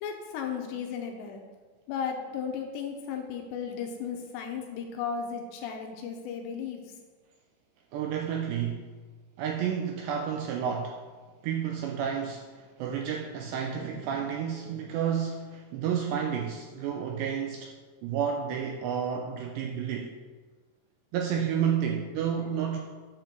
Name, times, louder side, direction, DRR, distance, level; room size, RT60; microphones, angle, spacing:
voice 1, 0.0-1.4 1.9-6.8, left 7 dB, 80° left, 3 dB, 2.7 m, -35 dB
voice 2, 7.9-8.9 9.4-11.0 11.4-17.7 18.0-20.2 21.1-22.8, right 8 dB, 85° right, 2 dB, 2.5 m, -31 dB
9.8 x 4.4 x 6.7 m, 1.4 s
omnidirectional pair, 5.6 m